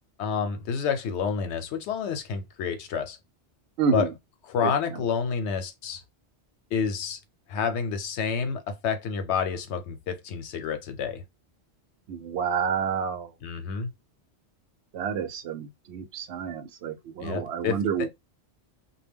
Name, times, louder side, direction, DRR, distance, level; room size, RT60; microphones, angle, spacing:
voice 1, 0.2-3.2 3.9-4.1 4.5-6.0 6.7-7.2 7.5-11.2 13.4-13.9 17.2-18.1, left 6 dB, 90° left, 0.9 m, -29 dB
voice 2, 3.8-4.1 12.1-13.3 14.9-18.1, right 6 dB, 80° right, 0.9 m, -29 dB
2.1 x 2.1 x 3.4 m
omnidirectional pair, 1.1 m